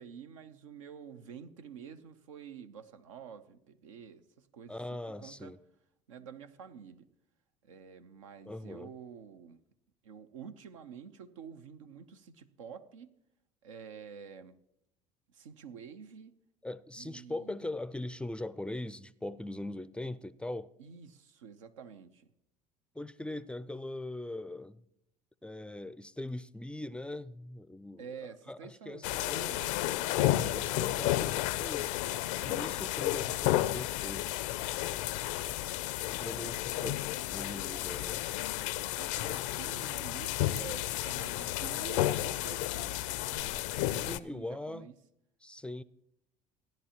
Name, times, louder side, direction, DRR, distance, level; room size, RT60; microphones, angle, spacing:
voice 1, 0.0-5.5 6.1-7.1 7.6-9.6 10.0-13.2 13.6-14.6 15.3-16.3 17.0-17.6 20.8-22.3 28.0-30.0 36.7-37.1 38.9-45.0, right 7 dB, 85° right, 0.6 m, -49 dB
voice 2, 4.7-5.6 8.5-8.9 16.6-20.7 23.0-24.8 25.4-28.1 28.5-29.6 30.2-31.9 32.4-34.3 36.1-36.9 37.3-38.3 44.1-44.9 45.4-45.8, left 1 dB, 5° left, 0.4 m, -41 dB
sound 1, 29.0-44.2, left 15 dB, 75° left, 0.4 m, -32 dB
16.0 x 10.5 x 2.9 m
hypercardioid pair, 70°, 16 cm